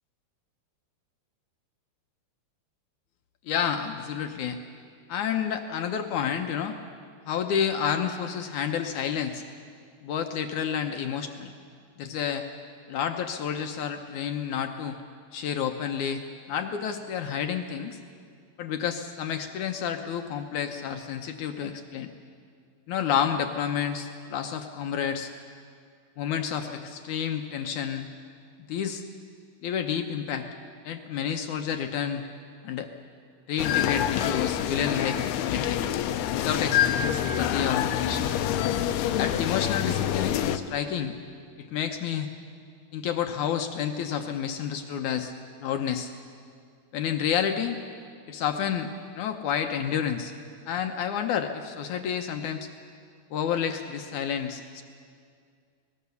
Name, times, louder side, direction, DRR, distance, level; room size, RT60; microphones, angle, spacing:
voice 1, 3.5-4.6 5.1-6.8 7.3-9.4 10.0-11.5 12.0-12.5 12.9-15.0 15.3-18.0 18.6-22.1 22.9-25.3 26.2-28.1 28.7-29.0 29.6-30.5 30.8-32.2 32.6-32.9 33.5-35.8 36.4-38.3 39.2-41.2 41.6-42.3 42.9-45.3 45.6-46.1 46.9-47.8 48.3-48.9 49.2-50.3 50.7-52.7 53.3-54.8, left 8 dB, 75° left, 5 dB, 1.8 m, -30 dB
sound 1, 33.6-40.6, left 10 dB, 90° left, 2.8 m, -26 dB
25.0 x 19.5 x 7.0 m, 2.2 s
omnidirectional pair, 4.4 m